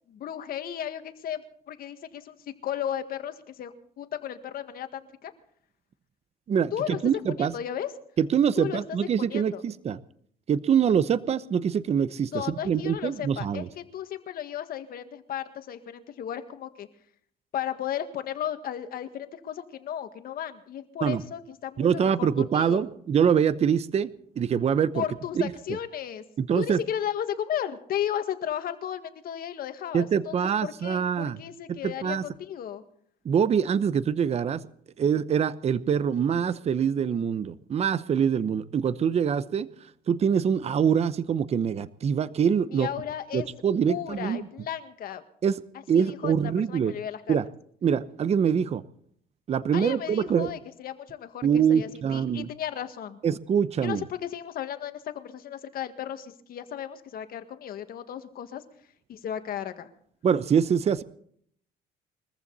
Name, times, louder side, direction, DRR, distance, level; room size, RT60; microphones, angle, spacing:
voice 1, 0.1-2.4 2.6-5.3 6.7-7.0 7.4-7.9 8.6-9.0 9.3-9.6 12.3-13.6 13.9-16.9 17.5-21.9 22.2-22.8 24.9-26.2 26.5-30.3 30.6-32.8 42.7-43.5 43.9-45.2 45.9-46.3 46.7-47.3 49.7-53.2 53.8-58.6 59.1-59.9, left 10 dB, 60° left, 9 dB, 1.8 m, -34 dB
voice 2, 6.5-7.5 8.2-10.0 10.5-13.7 21.0-21.2 21.8-25.0 26.4-26.8 29.9-31.4 31.7-32.2 33.2-34.6 35.0-39.7 40.1-42.9 43.3-44.5 45.4-45.6 45.9-46.9 47.3-47.5 47.8-48.8 49.5-50.5 51.4-52.5 53.2-54.0 60.2-61.0, right 7 dB, 40° right, 16 dB, 0.8 m, -24 dB
22.5 x 14.5 x 4.1 m, 0.64 s
cardioid pair, 110°, 17 cm